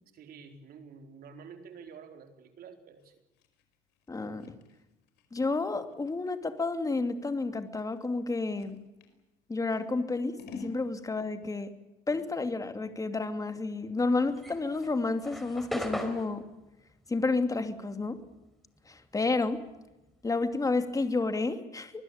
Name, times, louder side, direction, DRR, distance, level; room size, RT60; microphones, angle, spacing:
voice 1, 0.1-3.1, right 6 dB, 60° right, 6 dB, 4.4 m, -49 dB
Scissors, 3.0-9.2 9.7-10.8, left 4 dB, 90° left, 4.9 m, -52 dB
voice 2, 4.1-4.5 5.3-8.8 9.5-11.7 12.1-16.4 17.1-18.2 18.9-19.6 20.2-22.0, left 3 dB, 20° left, 8 dB, 2.7 m, -30 dB
sound 1, 14.3-19.0 19.3-21.3, equal, ahead, 4.7 m, -40 dB
24.5 x 20.5 x 8.8 m, 0.98 s
cardioid pair, 110°, 17 cm